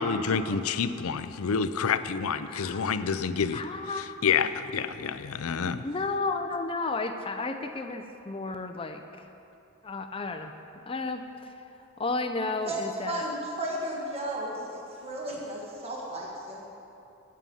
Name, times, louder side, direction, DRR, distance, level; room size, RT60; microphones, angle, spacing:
voice 1, 0.0-3.6 4.2-5.8, left 6 dB, 85° left, 12 dB, 0.5 m, -28 dB
voice 2, 2.5-2.9 3.5-4.1 5.8-9.0 9.8-10.5 10.9-11.5 12.0-13.2, left 3 dB, 25° left, 7 dB, 0.5 m, -32 dB
voice 3, 12.6-16.7, right 1 dB, 30° right, -3 dB, 1.6 m, -34 dB
9.1 x 8.6 x 9.2 m, 2.9 s
head